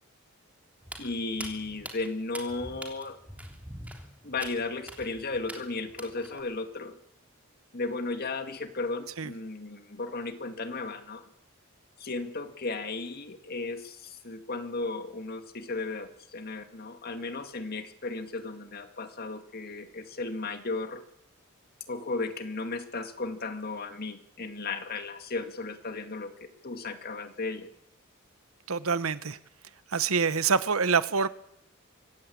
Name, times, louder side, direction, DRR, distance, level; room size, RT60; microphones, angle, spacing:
Walk footsteps, 0.8-6.4, right 1 dB, 5° right, 3.0 m, -44 dB
voice 1, 1.0-3.2 4.2-7.0 7.7-11.2 12.0-21.0 21.9-27.7, left 3 dB, 45° left, 2.2 m, -35 dB
voice 2, 28.7-29.4 29.9-31.3, right 5 dB, 85° right, 1.1 m, -26 dB
24.5 x 15.5 x 8.6 m
head